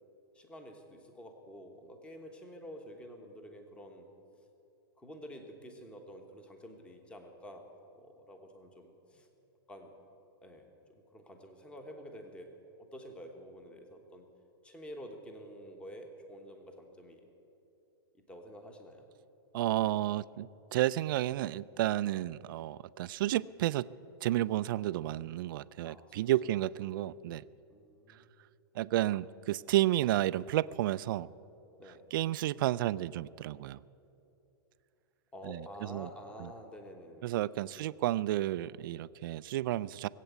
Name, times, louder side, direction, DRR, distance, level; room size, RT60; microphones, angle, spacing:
voice 1, 0.3-4.1 5.0-7.7 7.9-9.3 9.7-9.9 10.4-14.3 14.6-17.2 18.3-19.1 22.1-22.2 25.8-26.2 27.7-28.3 31.8-32.0 35.3-37.3 37.6-37.9, equal, 10° left, 5 dB, 1.2 m, -49 dB
voice 2, 19.5-23.9 24.2-27.4 28.8-31.3 32.1-33.8 35.4-35.6 35.9-36.1 36.4-36.5 37.2-40.1, right 14 dB, 55° right, 18 dB, 0.4 m, -31 dB
19.0 x 8.3 x 8.2 m, 2.8 s
supercardioid pair, 155°, 13 cm